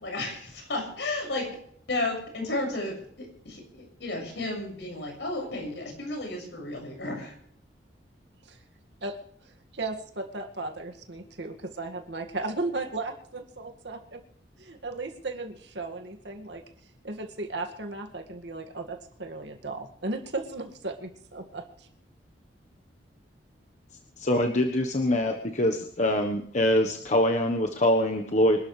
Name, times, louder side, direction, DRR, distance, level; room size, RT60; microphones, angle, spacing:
voice 1, 0.0-1.5 1.9-7.3, left 2 dB, 75° left, 1 dB, 6.6 m, -33 dB
voice 2, 9.4-14.2 14.6-16.6 17.0-21.9, right 2 dB, 75° right, 4 dB, 2.1 m, -36 dB
voice 3, 24.2-28.6, left 1 dB, 40° left, 3 dB, 1.3 m, -24 dB
26.0 x 12.0 x 3.4 m, 0.65 s
head